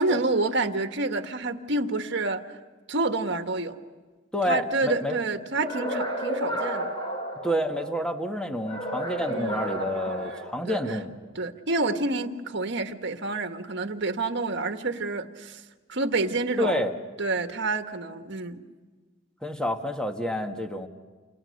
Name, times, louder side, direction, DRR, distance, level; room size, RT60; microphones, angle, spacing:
voice 1, 0.0-2.4 2.9-3.8 4.5-6.9 9.3-9.6 10.0-10.4 10.7-10.8 11.3-15.6 15.9-16.8 17.2-18.6, right 2 dB, 60° right, 7 dB, 1.6 m, -28 dB
voice 2, 4.3-5.2 7.4-11.2 16.6-16.9 19.4-20.9, equal, 5° left, 4 dB, 1.7 m, -29 dB
sound 1, 5.6-8.0 8.6-11.0, equal, 25° left, 5.1 m, -32 dB
29.5 x 29.0 x 6.6 m, 1.4 s
head